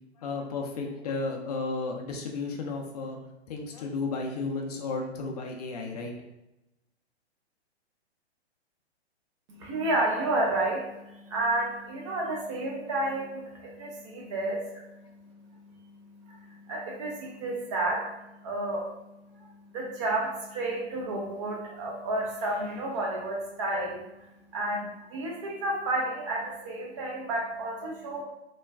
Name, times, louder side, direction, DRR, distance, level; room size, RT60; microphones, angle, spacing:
voice 1, 0.2-3.2 3.5-6.2, left 3 dB, 35° left, 1 dB, 0.4 m, -33 dB
voice 2, 9.5-28.2, right 2 dB, 30° right, -1 dB, 0.4 m, -32 dB
2.3 x 2.2 x 3.3 m, 0.94 s
figure-of-eight pair, 115°, 34 cm